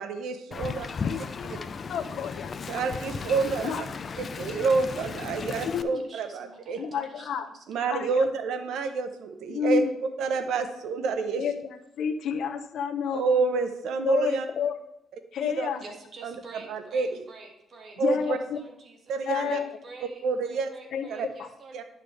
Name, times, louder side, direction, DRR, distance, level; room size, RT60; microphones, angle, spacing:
voice 1, 0.0-0.9 1.2-1.6 2.7-3.7 4.2-6.8 7.7-11.4 13.1-14.5 15.4-15.7 16.2-16.3 16.7-17.2 18.0-18.4 19.1-19.6 20.0-20.7 21.1-21.3 21.7-21.8, right 4 dB, 80° right, 8 dB, 0.8 m, -28 dB
Wind, 0.5-5.8, left 5 dB, 40° left, 0.5 m, -35 dB
voice 2, 1.0-2.8 3.6-3.8 5.7-5.9 6.8-7.5 7.9-8.3 9.5-9.9 11.4-11.5 12.0-13.3 14.0-14.7 15.3-15.8 18.0-18.6 19.2-19.7 20.9-21.1, left 7 dB, 70° left, 8 dB, 0.8 m, -30 dB
voice 3, 5.8-7.6 15.8-21.8, right 3 dB, 50° right, 2 dB, 1.8 m, -48 dB
10.5 x 6.7 x 3.3 m, 0.81 s
cardioid pair, 90°, 0 cm